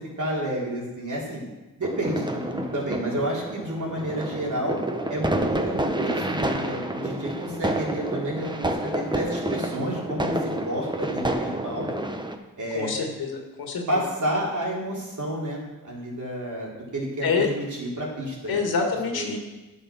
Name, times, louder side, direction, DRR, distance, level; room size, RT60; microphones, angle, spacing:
voice 1, 0.2-1.4 1.8-4.8 5.1-11.9 12.6-12.9 13.9-18.7 19.1-19.3, right 1 dB, 55° right, -4 dB, 4.0 m, -30 dB
sound 1, 1.8-12.4, right 1 dB, 15° right, 1.0 m, -29 dB
voice 2, 12.7-14.0 17.2-17.5 18.5-19.4, left 5 dB, 90° left, 2 dB, 2.0 m, -26 dB
11.0 x 7.0 x 6.3 m, 1.1 s
cardioid pair, 75°, 35 cm